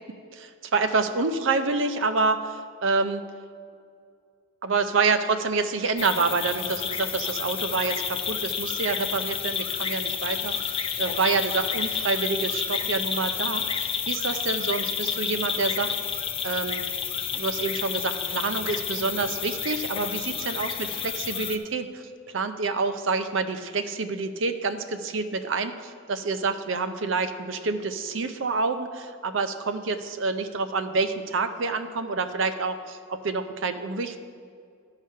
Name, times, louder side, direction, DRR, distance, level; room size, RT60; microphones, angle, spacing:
voice 1, 0.3-3.2 4.6-15.9 16.4-16.8 17.3-34.2, right 4 dB, 65° right, 9 dB, 0.6 m, -27 dB
sound 1, 6.0-21.6, left 7 dB, 25° left, 0.4 m, -30 dB
12.5 x 4.9 x 5.6 m, 2.2 s
head